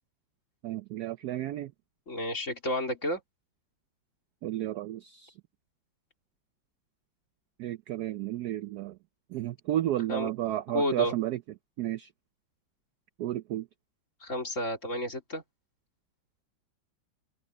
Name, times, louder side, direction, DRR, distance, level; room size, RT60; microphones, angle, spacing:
voice 1, 0.6-1.7 4.4-5.3 7.6-9.0 9.3-11.4 11.8-12.1 13.2-13.7, right 13 dB, 70° right, 0.9 m, -32 dB
voice 2, 2.1-3.2 10.1-10.3 10.7-11.1 14.2-15.4, left 1 dB, 40° left, 4.2 m, -31 dB
open air
omnidirectional pair, 2.1 m